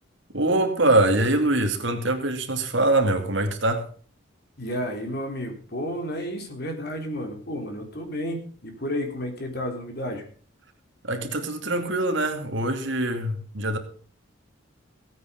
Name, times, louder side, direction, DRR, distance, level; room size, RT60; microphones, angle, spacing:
voice 1, 0.3-3.9 11.0-13.8, right 2 dB, 65° right, 2.6 m, -23 dB
voice 2, 4.6-10.2, equal, 50° left, 3.7 m, -31 dB
17.0 x 9.2 x 5.3 m
head